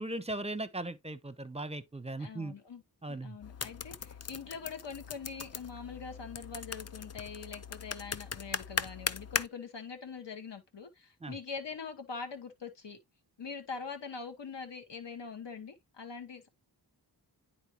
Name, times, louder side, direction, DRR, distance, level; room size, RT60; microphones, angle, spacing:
voice 1, 0.0-2.5 3.0-3.4 11.2-11.3, right 2 dB, 15° right, 0.7 m, -38 dB
voice 2, 2.2-2.8 3.1-13.0 13.4-16.5, left 5 dB, 85° left, 1.2 m, -43 dB
sound 1, 3.4-9.5, left 6 dB, 40° left, 0.4 m, -39 dB
9.7 x 4.3 x 2.9 m
wide cardioid pair, 80°, 42 cm